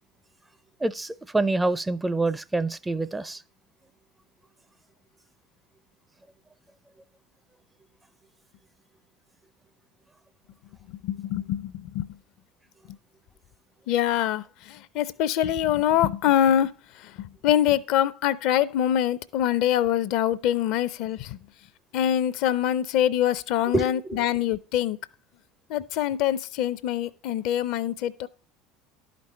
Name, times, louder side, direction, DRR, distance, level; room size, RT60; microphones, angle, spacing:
voice 1, 0.8-3.4 23.7-24.3, right 2 dB, 10° right, 0.4 m, -26 dB
voice 2, 10.9-12.2 13.9-16.7 17.0-21.4 21.9-25.0 25.7-28.3, left 11 dB, 60° left, 0.5 m, -24 dB
11.5 x 5.2 x 4.2 m
figure-of-eight pair, 70°, 0 cm